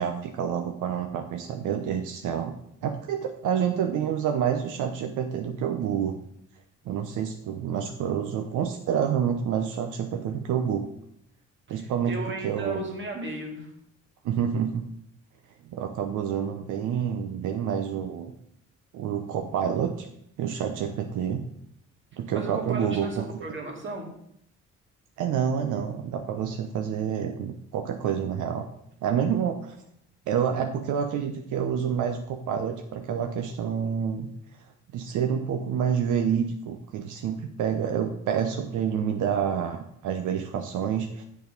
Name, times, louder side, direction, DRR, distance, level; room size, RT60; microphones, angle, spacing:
voice 1, 0.0-2.5 2.8-6.2 6.8-10.9 11.7-12.2 12.4-12.8 14.2-14.9 15.6-18.3 18.9-20.1 20.4-21.4 22.1-23.2 25.2-28.6 29.0-29.8 30.3-34.3 34.9-41.2, right 8 dB, 85° right, 5 dB, 0.8 m, -28 dB
voice 2, 11.7-13.7 22.3-24.1, right 2 dB, 40° right, 1 dB, 2.3 m, -35 dB
6.9 x 6.4 x 5.2 m, 0.71 s
cardioid pair, 90°, 30 cm